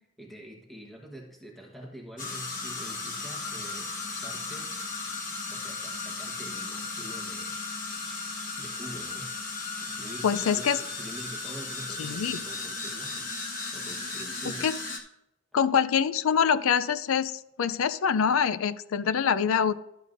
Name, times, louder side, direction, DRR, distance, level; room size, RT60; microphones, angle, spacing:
voice 1, 0.2-4.8 5.5-7.6 8.0-9.3 9.8-14.7, equal, ahead, -1 dB, 1.1 m, -46 dB
sound 1, 2.2-15.0, left 3 dB, 40° left, 1.1 m, -36 dB
voice 2, 10.2-10.8 12.0-12.4 14.6-14.7 15.5-19.8, left 7 dB, 75° left, 15 dB, 0.4 m, -25 dB
12.0 x 8.2 x 2.6 m, 0.87 s
head